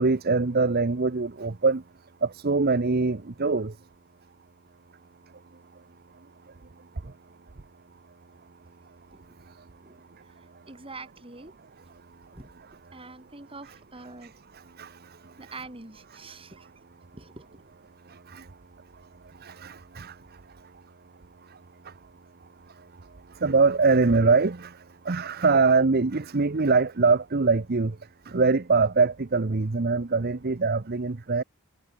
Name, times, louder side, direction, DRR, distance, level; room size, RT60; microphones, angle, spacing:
voice 1, 0.0-1.8 2.2-3.8 7.0-7.1 9.5-9.6 13.6-13.7 14.2-15.5 18.1-18.5 19.4-20.2 21.5-21.6 21.8-21.9 23.3-28.0 28.3-31.4, right 4 dB, 45° right, 0.8 m, -24 dB
voice 2, 10.4-11.5 12.3-12.5 12.9-14.3 15.4-16.7 17.1-17.6, right 3 dB, 25° right, 3.1 m, -45 dB
head